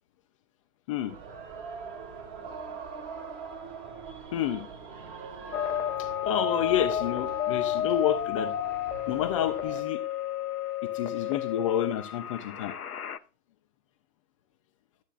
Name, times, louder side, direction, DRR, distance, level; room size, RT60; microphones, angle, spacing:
sound 1, 1.1-9.8, right 5 dB, 30° right, 1.8 m, -43 dB
voice 1, 4.3-4.7 6.0-8.5 9.1-10.0 10.8-12.7, left 10 dB, 25° left, 7 dB, 0.5 m, -29 dB
sound 2, 5.5-13.2, left 10 dB, 80° left, 0.7 m, -31 dB
12.0 x 8.0 x 2.4 m, 0.33 s
figure-of-eight pair, 115°, 44 cm